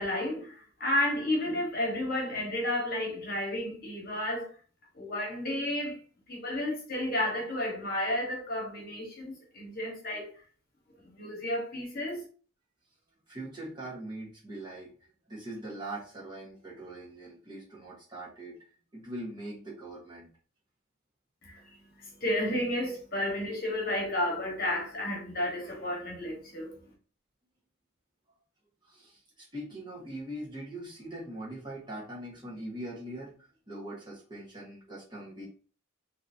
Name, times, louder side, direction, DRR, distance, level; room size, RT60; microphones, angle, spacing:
voice 1, 0.0-4.5 4.9-6.0 6.3-10.4 11.0-12.2 21.4-26.8, left 1 dB, 45° left, 1.2 m, -32 dB
voice 2, 13.3-18.6 18.9-20.3 28.8-33.3 33.7-35.5, right 1 dB, 20° right, 1.3 m, -42 dB
3.9 x 2.9 x 2.7 m
head